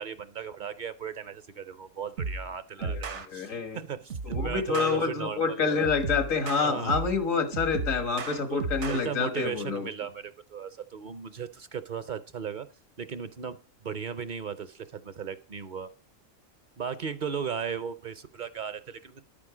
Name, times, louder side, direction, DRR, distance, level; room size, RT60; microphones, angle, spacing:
voice 1, 0.0-5.9 6.6-7.0 8.5-12.7 13.0-13.6 13.8-15.9 16.8-19.2, right 7 dB, 50° right, 0.7 m, -36 dB
sound 1, 2.2-2.5 2.8-3.3 4.1-5.0 5.8-7.2 7.5-9.0, right 4 dB, 65° right, 1.3 m, -34 dB
voice 2, 2.8-3.8 4.2-9.9, left 5 dB, 90° left, 1.9 m, -28 dB
10.5 x 8.8 x 4.9 m
omnidirectional pair, 1.3 m